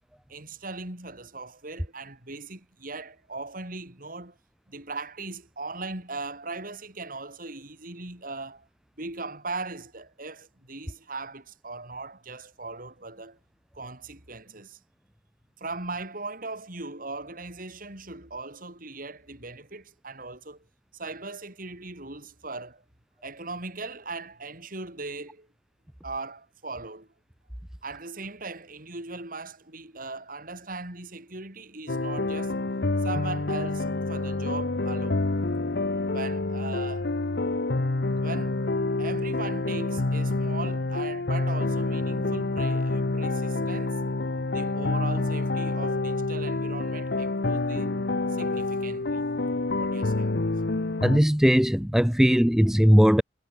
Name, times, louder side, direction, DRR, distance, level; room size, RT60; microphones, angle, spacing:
voice 1, 0.3-4.4 4.7-8.7 9.0-13.4 13.7-14.8 15.6-20.6 20.9-22.8 23.2-25.5 26.0-27.1 27.8-32.7 33.0-35.2 36.0-37.1 38.2-38.6 39.0-44.0 44.5-48.0 48.3-49.3 49.7-50.5, right 3 dB, 55° right, 7.5 m, -39 dB
sound 1, 31.9-51.2, left 2 dB, 65° left, 1.0 m, -27 dB
voice 2, 51.0-53.2, equal, 5° right, 0.4 m, -19 dB
head